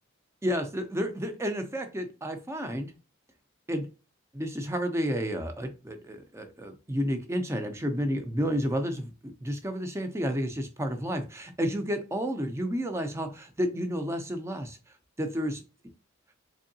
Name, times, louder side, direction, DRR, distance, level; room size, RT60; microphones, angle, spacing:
voice 1, 0.4-2.9 3.7-3.9 4.3-14.8 15.2-15.6, equal, 15° right, 6 dB, 0.5 m, -31 dB
3.6 x 3.3 x 2.7 m, 0.32 s
head